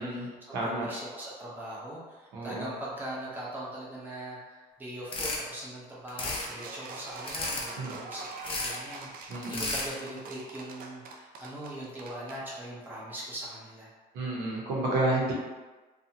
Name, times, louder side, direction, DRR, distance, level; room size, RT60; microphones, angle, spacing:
voice 1, 0.0-13.9, right 1 dB, 10° right, -7 dB, 0.8 m, -41 dB
voice 2, 0.5-0.9 2.3-2.7 7.8-7.9 9.3-9.7 14.1-15.3, right 2 dB, 85° right, -4 dB, 0.8 m, -30 dB
sound 1, 5.1-5.4 6.1-6.5 7.3-7.7 8.4-8.8 9.4-9.9, left 2 dB, 30° left, 0.5 m, -33 dB
sound 2, 6.2-12.4, right 3 dB, 60° right, 0.4 m, -44 dB
2.5 x 2.3 x 2.8 m, 1.3 s
cardioid pair, 110°, 17 cm